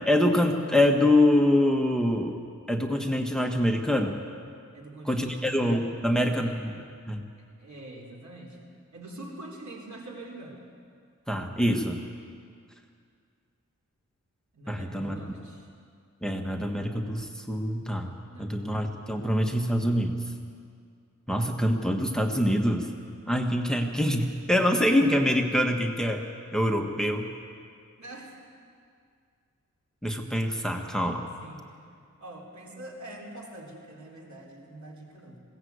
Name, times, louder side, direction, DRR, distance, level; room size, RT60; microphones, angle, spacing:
voice 1, 0.1-2.4 2.7-4.2 5.0-6.7 7.1-7.2 11.3-12.0 14.7-15.2 16.2-18.1 18.4-20.2 21.3-22.9 23.3-26.2 26.5-27.3 30.0-31.3, left 1 dB, ahead, 3 dB, 1.6 m, -25 dB
voice 2, 4.7-5.6 6.1-6.6 7.4-10.6 14.5-15.7 18.2-18.6 28.0-28.3 31.4-31.8 32.2-35.4, right 1 dB, 70° right, -1 dB, 3.9 m, -44 dB
21.0 x 17.5 x 8.3 m, 2.2 s
wide cardioid pair, 85°, 29 cm